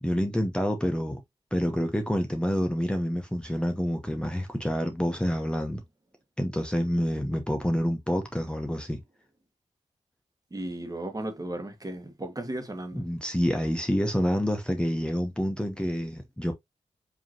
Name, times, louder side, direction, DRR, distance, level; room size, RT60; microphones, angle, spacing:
voice 1, 0.0-1.2 1.5-5.8 6.4-9.0 12.9-16.5, equal, 10° left, 0.8 m, -28 dB
voice 2, 10.5-13.0, right 1 dB, 30° right, 1.4 m, -35 dB
4.9 x 2.9 x 2.8 m
cardioid pair, 50°, 12 cm